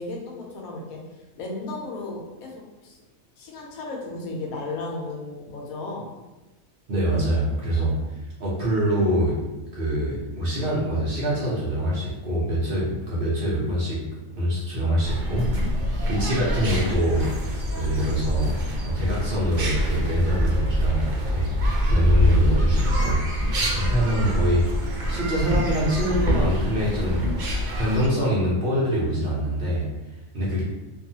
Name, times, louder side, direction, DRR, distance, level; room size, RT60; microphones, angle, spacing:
voice 1, 0.0-3.0 3.4-6.1, left 2 dB, 85° left, -1 dB, 1.1 m, -35 dB
voice 2, 6.9-9.3 9.7-14.0 14.3-17.3 17.7-23.2 23.6-27.3 27.8-29.9 30.3-30.6, right 1 dB, 50° right, -6 dB, 0.7 m, -25 dB
sound 1, 15.0-28.1, equal, 85° right, 0.4 m, -25 dB
2.6 x 2.3 x 2.7 m, 1.1 s
omnidirectional pair, 1.4 m